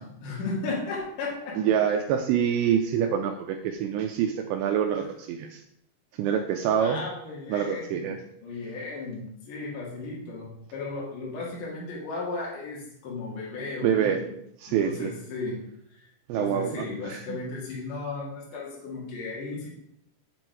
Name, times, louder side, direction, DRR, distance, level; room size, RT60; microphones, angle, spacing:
voice 1, 0.0-1.6 6.8-8.1 8.4-14.3 14.7-15.6 15.9-16.0 16.3-19.7, left 3 dB, 55° left, -4 dB, 2.9 m, -35 dB
voice 2, 1.6-5.6 6.2-7.0 7.5-8.2 13.8-14.2 14.6-15.1 16.3-17.4, right 8 dB, 85° right, 4 dB, 2.5 m, -26 dB
8.1 x 7.7 x 4.6 m, 0.76 s
omnidirectional pair, 5.7 m